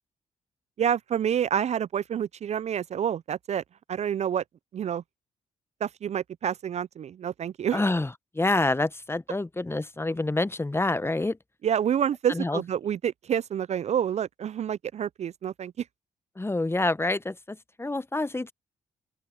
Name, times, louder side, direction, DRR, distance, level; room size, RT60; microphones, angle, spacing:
voice 1, 0.8-3.6 3.9-4.4 4.7-5.0 5.8-7.8 11.6-15.8, right 9 dB, 50° right, 0.4 m, -28 dB
voice 2, 7.7-11.4 12.3-12.6 16.4-18.5, left 2 dB, 15° left, 0.9 m, -27 dB
open air
hypercardioid pair, 45°, 15 cm